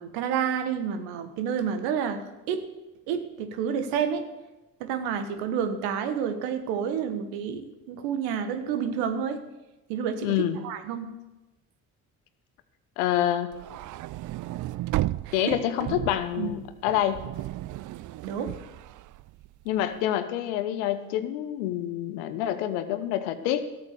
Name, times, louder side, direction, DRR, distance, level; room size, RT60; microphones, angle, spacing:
voice 1, 0.0-2.6 3.1-4.2 4.8-9.4 9.9-11.1 15.2-15.6 16.4-16.5 18.2-18.5, right 7 dB, 75° right, 9 dB, 1.4 m, -29 dB
voice 2, 10.2-10.6 13.0-13.5 15.3-17.3 19.6-23.6, left 11 dB, 80° left, 11 dB, 1.1 m, -27 dB
sound 1, 13.5-19.8, right 16 dB, 45° right, 0.4 m, -34 dB
13.5 x 8.6 x 6.8 m, 1.1 s
hypercardioid pair, 50°, 44 cm